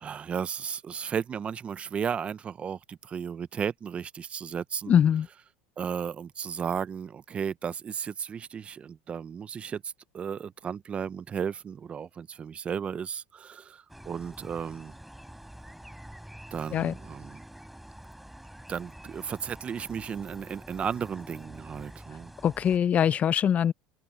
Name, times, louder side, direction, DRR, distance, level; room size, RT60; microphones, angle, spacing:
voice 1, 0.0-5.0 5.8-15.0 16.5-17.4 18.7-22.3, right 7 dB, 30° right, 0.7 m, -34 dB
voice 2, 4.9-5.3 16.7-16.9 22.4-23.7, left 9 dB, 35° left, 0.6 m, -23 dB
sound 1, 13.9-22.8, right 1 dB, ahead, 3.9 m, -47 dB
open air
supercardioid pair, 105°, 4 cm